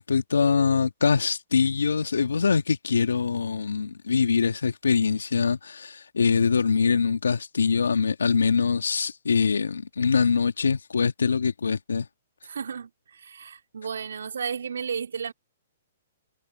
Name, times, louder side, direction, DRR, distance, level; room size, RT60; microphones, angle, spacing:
voice 1, 0.0-12.1, left 5 dB, 80° left, 1.7 m, -23 dB
voice 2, 12.4-15.3, right 6 dB, 75° right, 3.4 m, -33 dB
hypercardioid pair, 120°, 0 cm